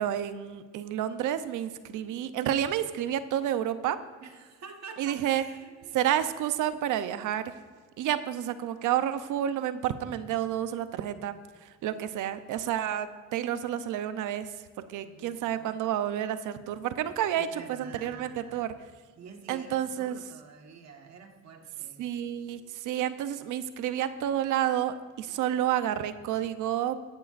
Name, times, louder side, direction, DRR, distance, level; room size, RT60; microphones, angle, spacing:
voice 1, 0.0-4.0 5.0-5.4 5.9-7.4 8.0-11.4 11.7-14.5 14.9-18.7 19.5-20.2 22.0-27.0, right 11 dB, 85° right, 11 dB, 0.7 m, -30 dB
voice 2, 4.2-6.0 15.0-15.8 17.3-18.7 19.1-22.1, right 5 dB, 60° right, 4 dB, 1.6 m, -48 dB
16.0 x 11.5 x 2.5 m, 1.5 s
cardioid pair, 90°, 30 cm